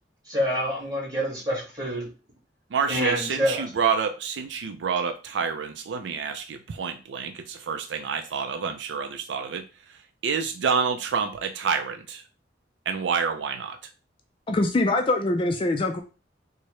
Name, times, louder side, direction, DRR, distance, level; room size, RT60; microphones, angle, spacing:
voice 1, 0.3-2.1 2.9-3.6, equal, 20° right, -5 dB, 1.8 m, -26 dB
voice 2, 2.7-9.7 10.2-12.2 12.9-13.8, right 6 dB, 75° right, 7 dB, 0.4 m, -28 dB
voice 3, 14.5-16.0, left 2 dB, 30° left, 5 dB, 0.4 m, -23 dB
4.5 x 2.1 x 3.1 m, 0.33 s
head